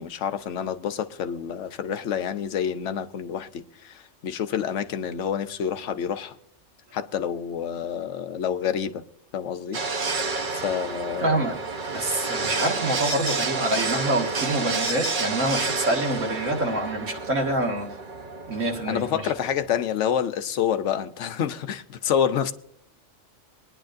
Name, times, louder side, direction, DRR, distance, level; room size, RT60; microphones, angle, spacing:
voice 1, 0.0-6.4 6.9-9.0 9.3-9.8 10.5-11.5 18.9-22.5, left 8 dB, 75° left, 1.0 m, -28 dB
sound 1, 9.7-19.8, right 3 dB, 45° right, 1.1 m, -30 dB
voice 2, 11.2-11.5 11.8-17.9 18.5-19.3, right 1 dB, 90° right, 2.2 m, -26 dB
23.0 x 10.0 x 2.6 m
omnidirectional pair, 1.3 m